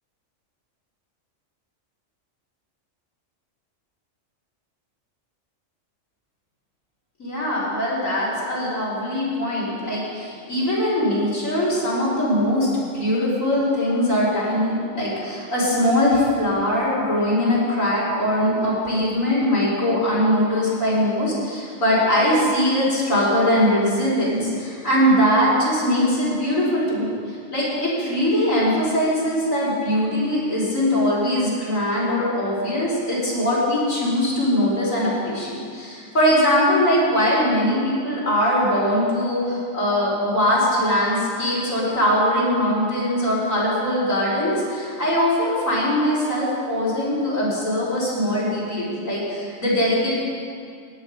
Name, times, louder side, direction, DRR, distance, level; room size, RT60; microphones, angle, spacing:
voice 1, 7.2-27.1 27.5-50.3, equal, 85° left, -8 dB, 4.9 m, -21 dB
17.5 x 9.8 x 5.4 m, 2.2 s
omnidirectional pair, 1.4 m